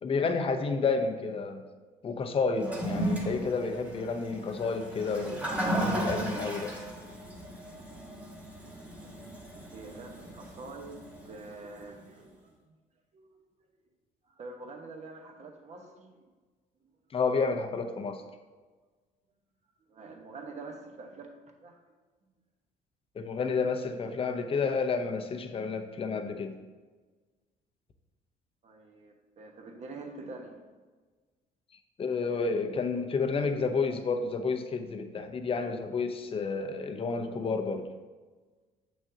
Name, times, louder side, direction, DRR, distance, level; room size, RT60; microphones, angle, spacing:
voice 1, 0.0-1.6 2.0-6.8 17.1-18.2 23.2-26.6 32.0-37.9, left 4 dB, 35° left, 6 dB, 0.7 m, -30 dB
Toilet flush, 2.6-11.9, right 1 dB, 10° right, 1.4 m, -35 dB
voice 2, 7.8-8.3 8.7-8.8 9.7-12.8 13.1-13.4 14.3-16.3 19.9-21.8 28.6-30.6 34.2-34.3, right 3 dB, 40° right, 3 dB, 1.1 m, -46 dB
7.7 x 6.2 x 2.8 m, 1.4 s
cardioid pair, 110°, 17 cm